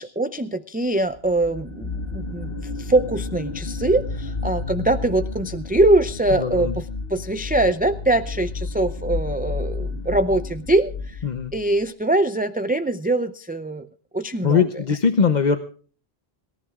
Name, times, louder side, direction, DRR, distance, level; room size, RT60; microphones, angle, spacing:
voice 1, 0.0-6.8 7.1-11.2 11.5-13.9 14.1-14.6, right 2 dB, 15° right, 10 dB, 0.3 m, -22 dB
sound 1, 1.1-11.8, left 3 dB, 70° left, 1.6 m, -31 dB
voice 2, 6.4-6.8 11.2-11.5 14.4-15.6, left 6 dB, 45° left, 8 dB, 0.9 m, -20 dB
25.5 x 14.5 x 2.4 m, 0.42 s
omnidirectional pair, 1.1 m